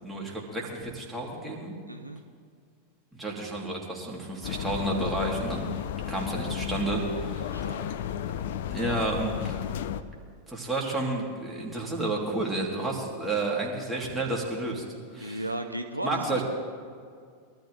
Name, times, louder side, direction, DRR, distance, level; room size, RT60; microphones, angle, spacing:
voice 1, 0.0-1.8 3.2-5.7 6.1-7.5 8.7-9.6 10.5-14.8 15.1-15.4 16.0-16.4, right 2 dB, 5° right, -3 dB, 3.3 m, -31 dB
voice 2, 1.9-2.2 7.3-7.9 15.2-16.4, right 1 dB, 85° right, 6 dB, 0.9 m, -35 dB
sound 1, 4.4-10.0, left 10 dB, 55° left, 0.6 m, -33 dB
23.5 x 13.0 x 3.4 m, 2.1 s
figure-of-eight pair, 90°, 0 cm